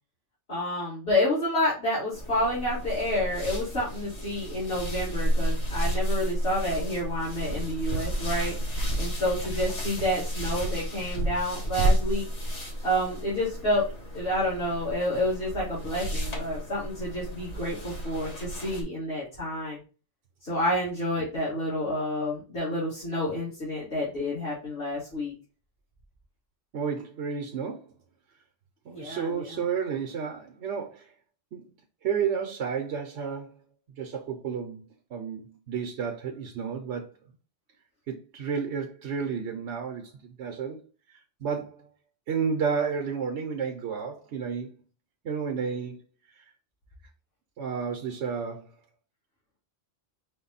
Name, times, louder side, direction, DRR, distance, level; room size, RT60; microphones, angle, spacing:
voice 1, 0.5-8.5 9.0-12.2 12.8-13.8 14.1-19.8 20.4-25.3 28.9-29.6, left 1 dB, 55° left, 2.2 m, -29 dB
sound 1, 2.1-18.8, equal, 35° left, 1.0 m, -31 dB
voice 2, 26.7-27.9 28.8-31.1 31.5-31.7 32.0-33.6 34.0-34.8 35.1-37.0 38.1-40.8 41.1-41.9 42.3-44.8 45.2-46.0 46.4-46.5 47.6-48.7, right 6 dB, 70° right, 1.0 m, -31 dB
5.1 x 2.2 x 3.9 m
omnidirectional pair, 1.2 m